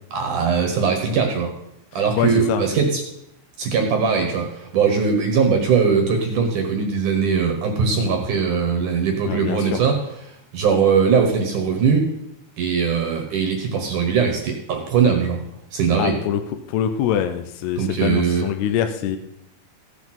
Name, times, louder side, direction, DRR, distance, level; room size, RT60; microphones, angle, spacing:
voice 1, 0.1-1.5 1.9-3.0 3.6-9.9 10.5-12.1 12.6-15.4 15.7-16.1 17.8-18.5, right 6 dB, 60° right, 2 dB, 2.3 m, -20 dB
voice 2, 1.9-2.6 9.2-9.8 16.0-16.4 16.7-19.2, left 9 dB, 80° left, 8 dB, 2.5 m, -24 dB
15.0 x 8.2 x 4.4 m, 0.79 s
omnidirectional pair, 5.2 m